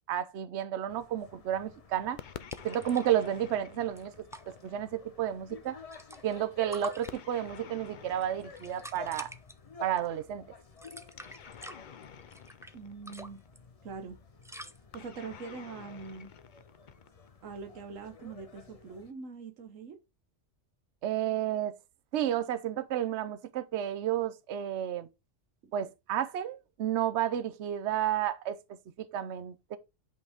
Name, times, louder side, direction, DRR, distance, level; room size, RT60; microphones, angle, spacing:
voice 1, 0.1-2.2 2.6-5.8 6.2-9.3 9.8-10.4 21.0-21.8 22.1-25.1 25.7-28.6 29.0-29.8, right 11 dB, 65° right, 1.0 m, -31 dB
sound 1, 0.9-19.1, left 5 dB, 30° left, 0.9 m, -53 dB
sound 2, 2.2-4.8 7.1-9.4 11.1-13.5 14.9-17.4, left 8 dB, 50° left, 0.6 m, -49 dB
sound 3, 2.5-3.3 3.5-3.6 3.8-4.4 5.5-6.4 6.7-7.6 8.1-9.5 10.0-10.2 10.7-12.7 13.1-13.6 14.4-14.8, right 1 dB, 5° right, 0.3 m, -46 dB
voice 2, 12.7-13.4 13.8-14.2 14.9-16.3 17.4-20.0 25.6-25.7, right 5 dB, 85° right, 1.4 m, -43 dB
8.8 x 5.4 x 3.5 m
omnidirectional pair, 1.3 m